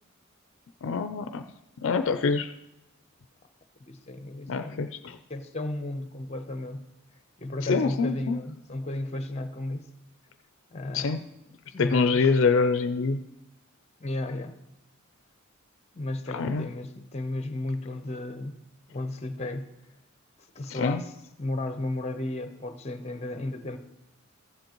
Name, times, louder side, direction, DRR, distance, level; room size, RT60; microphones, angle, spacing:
voice 1, 0.8-1.4 1.8-2.5 4.5-5.2 7.7-8.4 10.9-11.2 11.8-13.2 16.3-16.7 20.7-21.0, left 4 dB, 65° left, 9 dB, 0.4 m, -25 dB
voice 2, 3.8-4.9 5.3-6.9 7.4-9.9 10.7-11.2 11.7-12.2 14.0-14.6 15.9-18.6 18.9-19.7 20.5-21.1 21.4-23.8, left 2 dB, 30° left, 9 dB, 0.7 m, -34 dB
14.5 x 7.9 x 3.0 m, 0.88 s
head